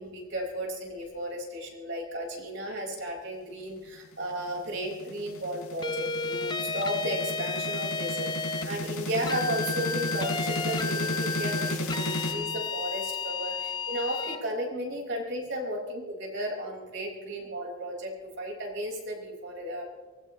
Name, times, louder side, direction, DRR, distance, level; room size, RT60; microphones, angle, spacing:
voice 1, 0.0-18.1 18.4-19.8, equal, 60° right, 0 dB, 5.0 m, -34 dB
sound 1, 4.2-12.3, left 1 dB, 90° left, 4.7 m, -34 dB
sound 2, 5.8-8.7 9.3-14.4, left 4 dB, 20° left, 0.7 m, -33 dB
24.0 x 19.0 x 3.1 m, 1.3 s
head